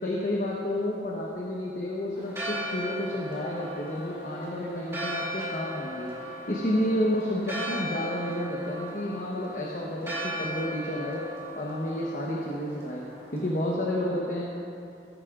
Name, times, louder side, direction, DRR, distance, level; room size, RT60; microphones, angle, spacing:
voice 1, 0.0-6.1 6.5-11.3 11.5-13.0 13.3-14.4, left 1 dB, 50° left, -3 dB, 1.0 m, -30 dB
Church bell, 2.2-13.7, equal, 15° right, 2.7 m, -37 dB
15.0 x 11.0 x 2.5 m, 2.6 s
head